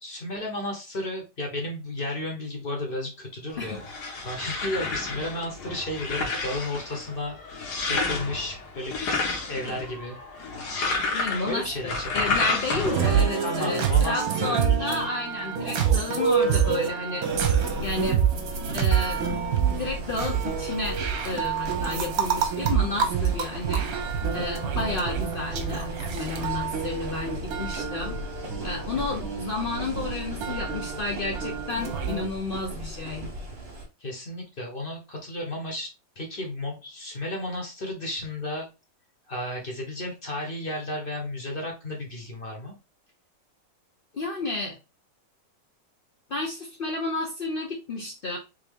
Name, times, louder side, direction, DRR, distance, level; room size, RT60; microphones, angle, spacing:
voice 1, 0.0-3.8 4.2-10.2 11.5-12.4 13.4-15.1 18.7-18.9 34.0-35.9 36.2-38.7 39.3-42.7, left 1 dB, 40° left, 1 dB, 1.0 m, -33 dB
sound 1, 3.5-13.2, left 3 dB, 70° left, 1.5 m, -30 dB
voice 2, 11.1-17.3 17.8-18.2 18.7-19.2 19.7-28.2 28.6-33.3 44.1-44.8 46.3-48.4, left 3 dB, 90° left, 1 dB, 0.4 m, -32 dB
sound 2, 12.8-32.3, right 7 dB, 65° right, 1.2 m, -27 dB
sound 3, 17.3-33.9, right 1 dB, 40° right, 1.2 m, -37 dB
3.7 x 2.9 x 3.4 m, 0.28 s
omnidirectional pair, 1.9 m